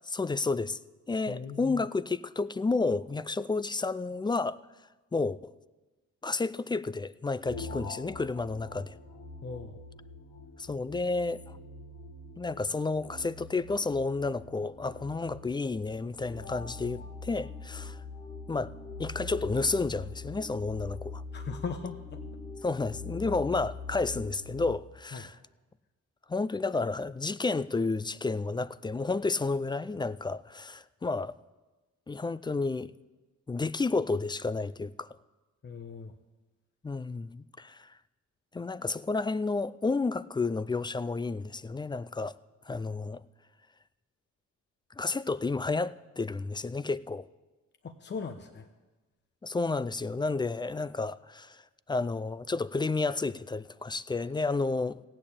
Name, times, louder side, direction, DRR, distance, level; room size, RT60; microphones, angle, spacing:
voice 1, 0.1-0.8 1.1-4.6 5.1-5.5 6.2-9.0 10.6-11.4 12.4-18.0 18.5-18.7 19.0-21.2 22.6-25.4 26.3-31.3 32.1-32.9 33.5-35.2 36.8-37.9 38.5-42.4 42.7-43.2 45.0-47.3 49.4-51.6 51.9-55.0, left 3 dB, 15° left, 0.4 m, -31 dB
voice 2, 1.3-1.8 9.4-9.8 21.3-22.2 25.1-25.3 35.6-36.1 47.8-48.7, left 5 dB, 35° left, 1.0 m, -39 dB
sound 1, 7.4-24.7, left 3 dB, 55° left, 1.9 m, -43 dB
15.5 x 8.8 x 8.5 m
cardioid pair, 90°, 30 cm